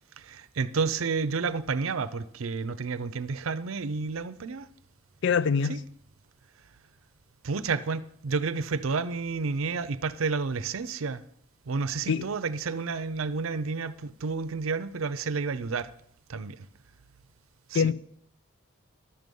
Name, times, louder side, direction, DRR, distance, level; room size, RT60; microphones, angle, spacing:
voice 1, 0.2-4.7 5.7-5.8 7.4-11.2 11.7-15.9 16.3-16.7 17.7-17.9, right 4 dB, 85° right, 0.6 m, -30 dB
voice 2, 5.2-5.8 12.1-12.3 17.7-17.9, left 6 dB, 60° left, 0.4 m, -24 dB
11.5 x 7.7 x 5.4 m
head